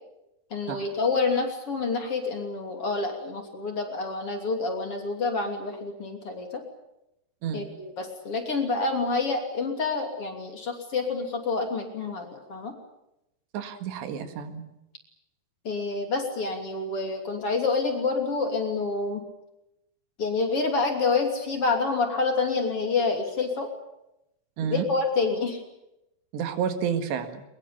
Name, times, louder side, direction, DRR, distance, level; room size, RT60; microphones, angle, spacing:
voice 1, 0.5-6.6 7.5-12.7 15.6-19.2 20.2-23.7 24.7-25.6, left 4 dB, 35° left, 3 dB, 3.4 m, -28 dB
voice 2, 13.5-14.6 24.6-24.9 26.3-27.4, right 8 dB, 90° right, 8 dB, 4.1 m, -30 dB
22.5 x 21.5 x 8.8 m, 0.86 s
omnidirectional pair, 4.9 m